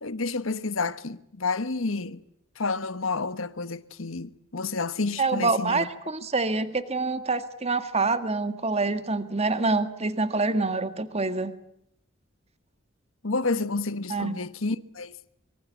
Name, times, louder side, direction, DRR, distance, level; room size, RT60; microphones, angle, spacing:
voice 1, 0.0-2.2 2.6-5.9 13.2-15.2, left 3 dB, 80° left, 1.3 m, -30 dB
voice 2, 5.2-11.5 14.1-14.4, right 3 dB, 30° right, 1.8 m, -26 dB
25.0 x 24.5 x 8.5 m
head